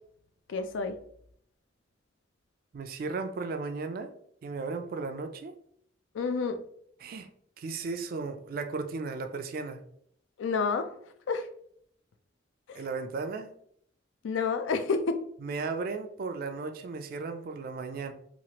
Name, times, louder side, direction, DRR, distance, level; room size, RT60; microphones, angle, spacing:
voice 1, 0.5-1.0 6.1-6.6 10.4-10.9 11.3-11.5 12.7-12.8 14.2-15.2, left 4 dB, 85° left, 0.4 m, -29 dB
voice 2, 2.7-4.1 4.4-5.5 7.0-7.3 7.6-9.8 12.8-13.5 15.4-18.1, right 4 dB, 50° right, 0.3 m, -35 dB
3.0 x 2.4 x 2.8 m
head